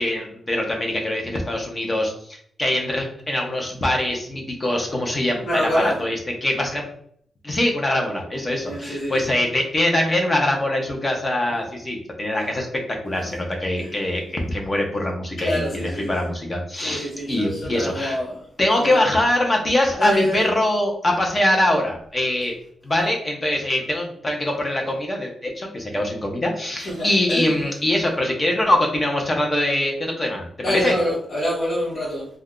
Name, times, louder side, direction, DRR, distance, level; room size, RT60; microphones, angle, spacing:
voice 1, 0.0-6.2 6.4-6.8 7.4-18.2 18.6-22.5 22.8-31.0, left 1 dB, 30° left, 1 dB, 0.8 m, -23 dB
voice 2, 5.4-6.0 8.6-9.3 13.8-13.9 15.4-16.3 16.8-18.4 18.8-19.0 20.0-20.5 26.8-27.7 30.6-32.3, equal, 65° left, -8 dB, 1.2 m, -26 dB
2.6 x 2.3 x 3.7 m, 0.64 s
cardioid pair, 110°, 0 cm